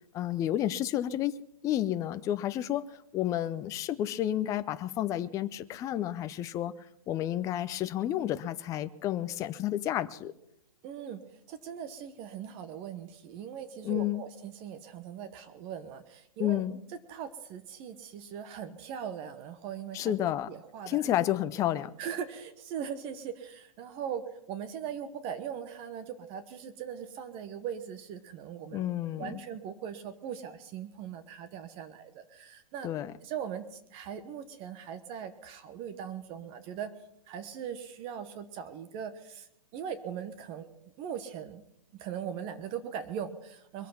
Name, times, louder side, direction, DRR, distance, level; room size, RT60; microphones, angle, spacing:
voice 1, 0.1-1.4 1.6-6.7 7.1-10.3 13.8-14.2 16.4-16.7 19.9-20.5 20.9-21.9 28.7-29.4 32.8-33.1, left 12 dB, 20° left, 0.5 m, -31 dB
voice 2, 10.8-16.6 17.1-20.1 20.5-21.0 22.0-24.2 24.5-28.9 29.2-32.9 33.2-36.9 37.3-40.7 41.0-41.6 41.9-43.9, right 8 dB, 30° right, 1.2 m, -40 dB
22.5 x 8.4 x 5.8 m
hypercardioid pair, 135°, 18 cm